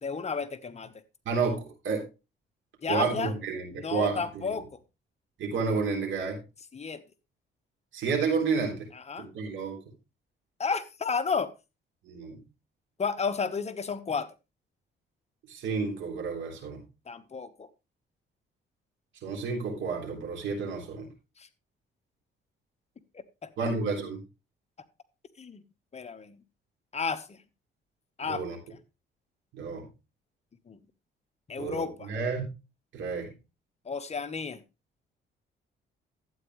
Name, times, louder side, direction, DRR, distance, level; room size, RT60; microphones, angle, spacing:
voice 1, 0.0-0.9 2.8-3.3 3.7-4.7 6.7-7.0 8.9-9.3 10.6-11.5 13.0-14.3 17.1-17.7 21.4-21.5 23.1-23.5 25.4-25.6 25.9-26.4 26.9-27.4 28.2-28.6 30.7-30.8 31.5-32.1 33.8-34.6, left 5 dB, 35° left, 10 dB, 1.1 m, -32 dB
voice 2, 1.3-2.0 2.9-4.4 5.4-6.4 7.9-8.9 9.2-9.8 12.0-12.4 15.5-16.8 19.2-21.1 23.6-24.2 28.2-28.6 29.5-29.9 31.6-32.4 32.9-33.3, right 5 dB, 75° right, 1 dB, 3.6 m, -30 dB
12.0 x 8.8 x 3.2 m, 0.27 s
cardioid pair, 90°, 20 cm